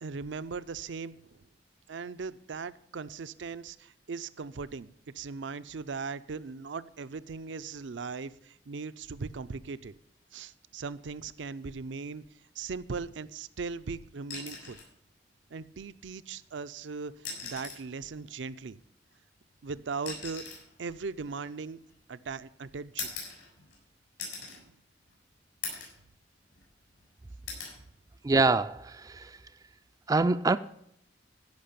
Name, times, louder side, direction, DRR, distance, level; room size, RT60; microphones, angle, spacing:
voice 1, 0.0-1.4 1.9-9.9 10.3-12.2 12.6-14.8 15.5-18.8 19.6-20.4 20.8-21.8 22.1-23.1 24.4-24.8, right 4 dB, 75° right, 0.5 m, -39 dB
sound 1, 14.3-14.9 16.3-16.5 17.1-17.9 19.1-22.1 23.0-23.8 24.2-24.6 25.1-25.2 25.6-26.0 26.4-27.0 27.5-27.8 29.2-29.5, left 5 dB, 85° left, 6.5 m, -41 dB
voice 2, 28.2-29.4 30.1-30.6, right 3 dB, 20° right, 0.3 m, -25 dB
16.0 x 5.8 x 6.8 m
head